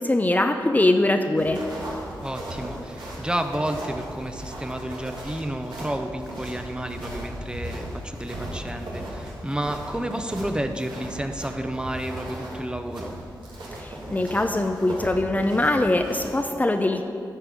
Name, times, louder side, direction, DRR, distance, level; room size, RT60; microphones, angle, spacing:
voice 1, 0.0-1.6 13.8-17.0, left 2 dB, 20° left, 5 dB, 0.6 m, -22 dB
sound 1, 1.3-16.3, right 1 dB, 85° right, 2.0 m, -37 dB
voice 2, 2.2-13.2, right 1 dB, 10° right, 6 dB, 0.8 m, -31 dB
11.0 x 6.6 x 5.1 m, 2.6 s
cardioid pair, 50°, 8 cm